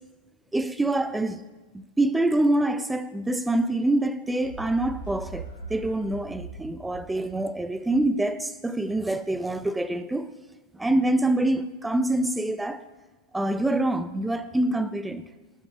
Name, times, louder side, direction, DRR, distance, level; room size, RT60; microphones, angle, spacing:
voice 1, 0.5-1.4 1.7-5.4 5.7-10.3 10.7-12.8 13.3-15.3, right 1 dB, 5° right, 0.3 m, -25 dB
sound 1, 4.4-8.2, right 3 dB, 90° left, 1.7 m, -41 dB
10.0 x 6.9 x 2.3 m
figure-of-eight pair, 90°, 0 cm